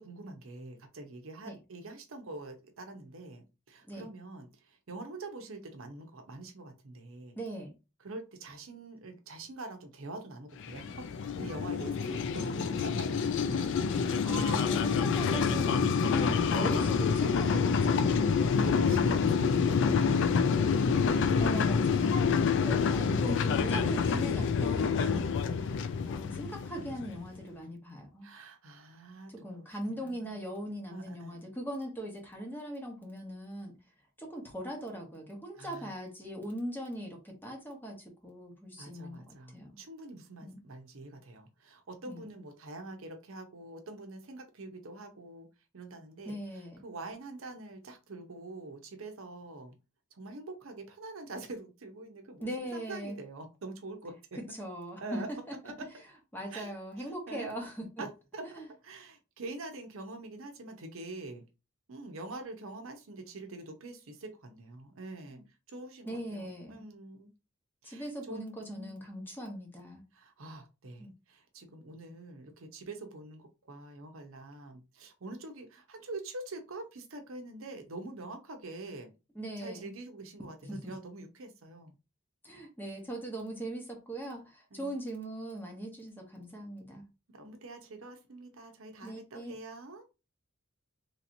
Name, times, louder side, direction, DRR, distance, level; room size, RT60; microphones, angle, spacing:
voice 1, 0.0-7.4 8.0-11.1 11.4-13.9 16.6-16.8 18.3-21.0 22.3-23.5 28.2-30.3 30.9-31.4 35.5-35.9 38.8-45.5 45.7-49.7 50.1-54.1 55.0-55.3 55.6-55.7 56.5-56.7 57.0-57.5 58.0-61.4 61.9-65.4 65.7-67.3 67.8-68.9 70.1-79.1 79.6-81.9 84.7-84.9 87.3-90.1, right 2 dB, 70° right, 0.7 m, -45 dB
voice 2, 7.4-7.7 14.2-18.2 21.4-25.4 25.6-25.8 26.0-28.3 29.4-33.7 34.2-39.8 40.4-40.6 42.1-42.3 46.2-46.8 52.4-53.2 54.5-55.2 56.3-57.8 58.5-58.7 65.3-65.4 66.0-66.8 67.8-70.0 71.0-71.1 79.3-79.9 80.7-80.9 82.4-87.0 89.0-89.5, right 1 dB, 10° left, 1.0 m, -40 dB
sound 1, 10.6-27.3, left 5 dB, 60° left, 0.3 m, -27 dB
3.2 x 2.9 x 2.5 m
head